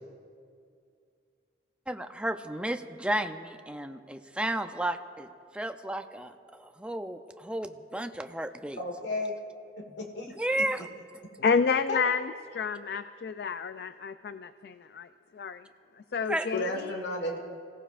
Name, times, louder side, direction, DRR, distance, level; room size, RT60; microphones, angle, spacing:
voice 1, 1.9-8.8 9.9-10.0 10.4-10.9 16.2-16.5, right 1 dB, 5° right, 0.5 m, -33 dB
voice 2, 8.8-9.4 9.8-10.3 10.6-10.7 11.9-12.1 16.5-17.4, left 2 dB, 80° left, 1.6 m, -33 dB
voice 3, 11.4-15.1 15.3-15.7 16.1-16.9, left 5 dB, 60° left, 0.4 m, -30 dB
28.5 x 17.5 x 2.5 m
head